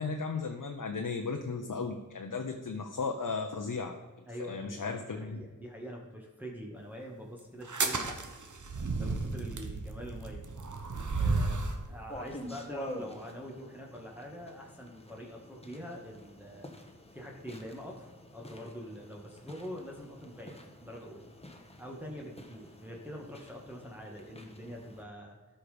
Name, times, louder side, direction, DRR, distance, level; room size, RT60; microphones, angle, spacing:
voice 1, 0.0-3.9 4.4-5.4, left 4 dB, 85° left, 3 dB, 0.8 m, -35 dB
voice 2, 4.3-8.2 8.6-10.4 11.1-16.7 17.1-21.3 21.8-25.4, equal, 5° right, -2 dB, 1.8 m, -45 dB
sound 1, 7.6-11.8, right 3 dB, 70° right, 1.2 m, -33 dB
sound 2, 12.1-25.0, equal, 20° left, 1.3 m, -48 dB
13.0 x 5.7 x 5.1 m, 1.3 s
wide cardioid pair, 65°, 31 cm